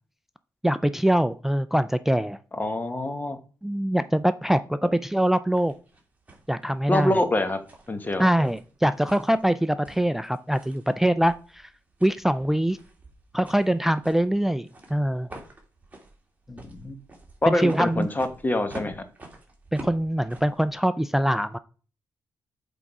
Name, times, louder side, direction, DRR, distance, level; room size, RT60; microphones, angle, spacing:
voice 1, 0.6-2.4 3.6-5.7 6.5-7.1 8.2-11.6 12.0-12.8 13.3-15.3 17.5-18.1 19.7-21.6, right 1 dB, 5° right, 13 dB, 0.4 m, -23 dB
voice 2, 2.6-3.4 6.9-7.6 7.9-8.3 16.5-17.0 17.4-19.1, left 1 dB, 25° left, 9 dB, 1.2 m, -25 dB
sound 1, 5.5-20.8, right 2 dB, 20° right, 2.0 m, -48 dB
7.8 x 3.7 x 4.7 m, 0.37 s
cardioid pair, 80°, 7 cm